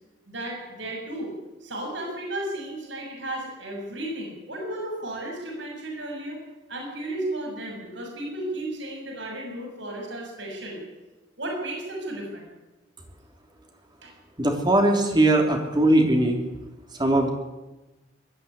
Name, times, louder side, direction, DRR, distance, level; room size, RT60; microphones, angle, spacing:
voice 1, 0.3-1.3 1.6-6.4 6.7-10.8 11.4-12.5 14.0-14.1, right 1 dB, 65° right, 1 dB, 7.0 m, -34 dB
voice 2, 14.4-16.4 17.0-17.3, right 1 dB, 20° right, 2 dB, 3.1 m, -20 dB
21.0 x 14.0 x 9.9 m, 1.1 s
head